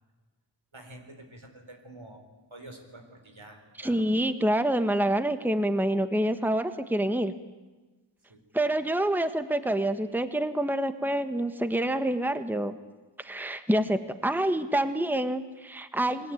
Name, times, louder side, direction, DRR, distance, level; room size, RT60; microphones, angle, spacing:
voice 1, 0.7-2.2 2.5-4.0 8.3-8.4, right 1 dB, 80° right, 4 dB, 4.4 m, -48 dB
voice 2, 3.8-7.3 8.5-12.8 13.2-16.3, right 1 dB, 5° right, 10 dB, 1.3 m, -27 dB
29.0 x 20.5 x 9.1 m, 1.2 s
wide cardioid pair, 45°, 47 cm